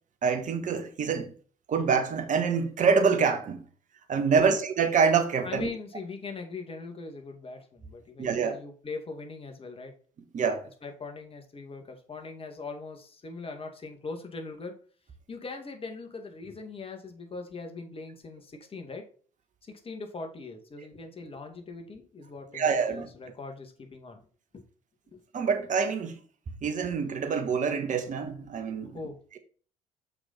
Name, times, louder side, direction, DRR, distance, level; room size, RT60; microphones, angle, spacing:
voice 1, 0.2-1.3 1.7-3.6 4.1-5.7 8.2-8.6 10.3-10.7 22.5-23.1 25.3-26.2 26.6-29.0, right 5 dB, 45° right, 1.6 m, -26 dB
voice 2, 4.2-4.6 5.4-9.9 10.8-14.7 15.3-19.0 19.6-24.2 24.5-24.6 25.1-25.2 28.9-29.2, left 3 dB, 35° left, 2.3 m, -41 dB
6.8 x 5.6 x 4.3 m
hypercardioid pair, 50°, 17 cm